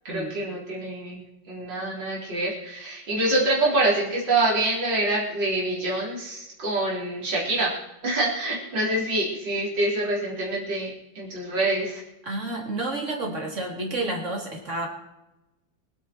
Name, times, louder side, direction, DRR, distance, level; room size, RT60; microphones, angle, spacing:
voice 1, 0.0-1.2 1.5-7.7 8.0-10.9 11.2-12.0, right 2 dB, 70° right, -5 dB, 4.6 m, -26 dB
voice 2, 12.2-14.9, right 2 dB, 40° right, 0 dB, 3.8 m, -30 dB
25.0 x 9.0 x 4.5 m, 0.96 s
omnidirectional pair, 2.0 m